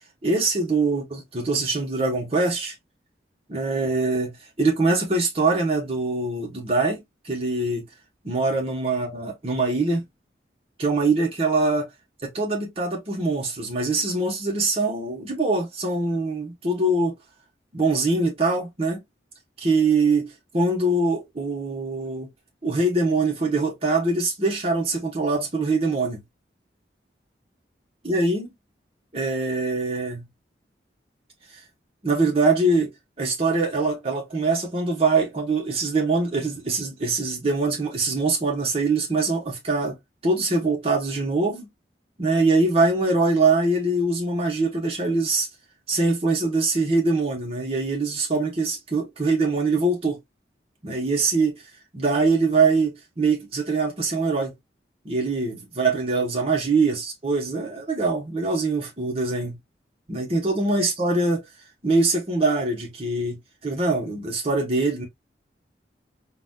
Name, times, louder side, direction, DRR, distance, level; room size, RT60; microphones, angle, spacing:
voice 1, 0.2-2.7 3.5-7.8 8.2-10.0 10.8-11.9 12.2-17.2 17.7-19.0 19.6-22.3 22.6-26.2 28.0-28.5 29.1-30.3 32.0-32.9 33.2-40.0 40.2-41.7 42.2-45.5 45.9-50.2 50.8-51.6 51.9-54.5 55.0-59.6 60.1-61.4 61.8-65.1, right 3 dB, 35° right, 1.1 m, -23 dB
4.0 x 2.4 x 2.3 m
head